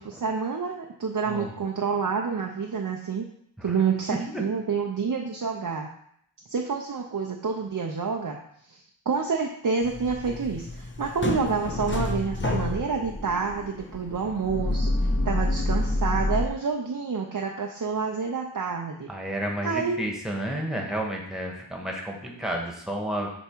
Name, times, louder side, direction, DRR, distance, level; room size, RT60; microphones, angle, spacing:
voice 1, 0.0-3.3 3.6-5.9 6.5-8.4 8.7-14.9 15.2-19.1 19.6-20.0, right 5 dB, 45° right, 1 dB, 0.7 m, -28 dB
sound 1, 9.8-16.5, left 2 dB, 25° left, 0.7 m, -28 dB
voice 2, 19.1-23.3, right 1 dB, ahead, 0 dB, 1.4 m, -31 dB
6.9 x 3.1 x 4.5 m, 0.70 s
wide cardioid pair, 45°, 47 cm